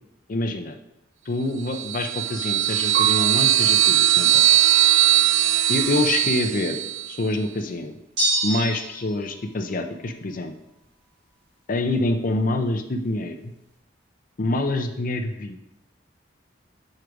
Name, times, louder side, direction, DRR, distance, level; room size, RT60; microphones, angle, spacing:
voice 1, 0.3-0.8 1.3-4.5 5.0-5.1 5.7-6.8 7.1-7.9 8.4-10.5 11.7-13.5 14.4-15.6, left 2 dB, 45° left, 5 dB, 0.5 m, -26 dB
sound 1, 1.7-7.1, right 14 dB, 90° right, 0.3 m, -20 dB
Piano, 2.9-5.7 6.3-7.0, right 7 dB, 50° right, 1.3 m, -35 dB
sound 2, 8.2-9.1, right 1 dB, 70° right, 2.5 m, -25 dB
6.6 x 4.9 x 4.6 m, 0.85 s
head